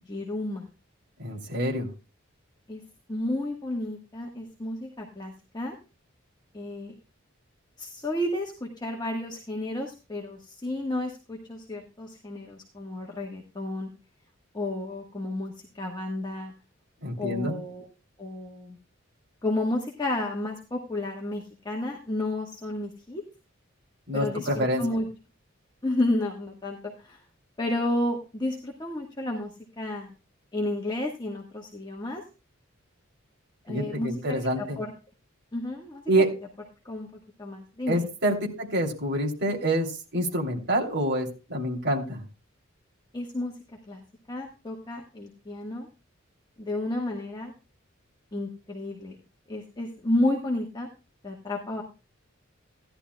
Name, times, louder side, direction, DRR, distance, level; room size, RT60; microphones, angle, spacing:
voice 1, 0.1-0.7 2.7-2.8 3.1-5.7 6.5-6.9 7.8-13.9 14.5-16.5 17.2-17.9 18.2-18.8 19.4-23.2 24.1-25.1 25.8-27.2 27.6-29.5 29.8-30.1 30.5-32.2 33.6-34.9 35.5-36.0 36.8-38.1 43.1-43.5 43.9-44.0 44.3-45.9 46.6-47.5 48.3-49.2 49.5-50.9 51.2-51.8, left 1 dB, 20° left, -1 dB, 1.3 m, -31 dB
voice 2, 1.2-1.9 17.0-17.6 24.1-24.8 33.7-34.8 36.1-36.3 37.9-42.2, right 1 dB, 55° right, 0 dB, 3.0 m, -27 dB
16.5 x 11.0 x 2.2 m, 0.31 s
head